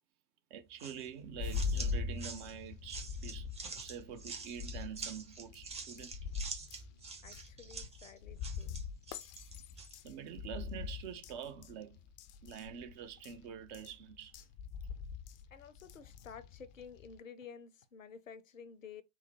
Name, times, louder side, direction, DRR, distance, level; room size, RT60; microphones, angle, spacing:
voice 1, 0.5-3.5 3.8-6.1 10.0-12.0 12.4-14.4, right 8 dB, 40° right, 0.8 m, -46 dB
sound 1, 0.8-10.0, right 4 dB, 15° right, 0.8 m, -46 dB
sound 2, 1.3-17.2, left 5 dB, 35° left, 0.4 m, -43 dB
voice 2, 7.2-8.8 15.5-19.0, left 6 dB, 80° left, 0.6 m, -52 dB
3.8 x 2.1 x 4.3 m
figure-of-eight pair, 85°, 39 cm